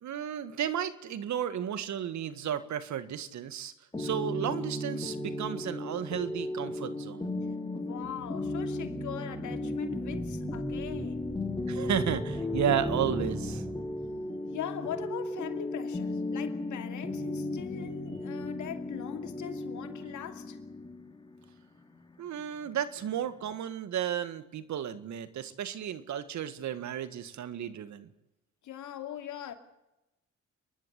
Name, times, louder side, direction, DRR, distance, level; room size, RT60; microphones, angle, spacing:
voice 1, 0.0-3.7 4.0-7.3 11.7-13.6 22.2-28.1, right 9 dB, 70° right, 1.8 m, -33 dB
sound 1, 3.9-23.5, left 2 dB, 15° left, 2.5 m, -36 dB
voice 2, 7.7-11.3 14.5-20.6 28.6-29.5, left 10 dB, 75° left, 2.6 m, -41 dB
sound 2, 8.0-14.4, right 1 dB, 10° right, 1.6 m, -39 dB
29.5 x 11.5 x 8.2 m
cardioid pair, 90°, 30 cm